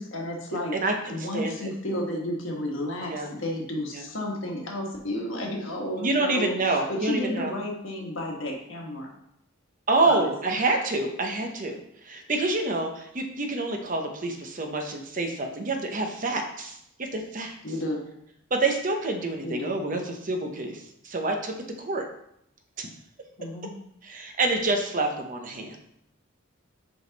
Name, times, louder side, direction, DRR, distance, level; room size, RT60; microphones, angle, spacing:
voice 1, 0.0-0.7 1.1-9.1 10.0-10.3 17.6-18.0 19.4-19.8 23.4-23.7, left 1 dB, 70° left, 0 dB, 1.4 m, -32 dB
voice 2, 0.7-1.7 3.1-3.3 3.9-4.0 6.0-7.5 9.9-11.8 12.0-17.5 18.5-22.0 22.8-22.9 24.0-25.8, right 2 dB, 40° right, 4 dB, 0.7 m, -27 dB
5.1 x 4.8 x 4.0 m, 0.75 s
head